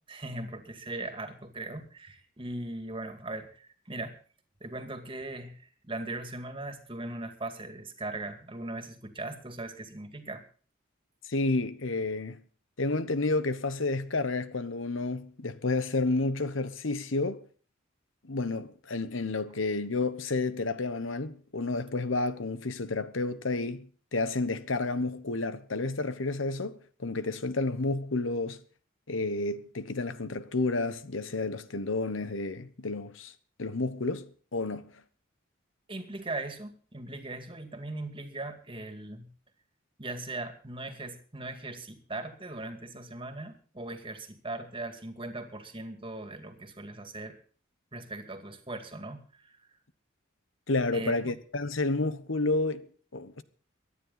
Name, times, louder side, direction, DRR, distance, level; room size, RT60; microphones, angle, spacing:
voice 1, 0.1-4.1 4.6-10.4 35.9-39.3 40.0-47.4 47.9-49.7 50.9-51.4, right 2 dB, 25° right, 2.2 m, -39 dB
voice 2, 11.2-12.4 12.8-17.4 18.3-28.6 29.1-33.3 33.6-34.9 50.7-53.4, left 3 dB, 80° left, 1.1 m, -30 dB
24.0 x 9.9 x 4.1 m
head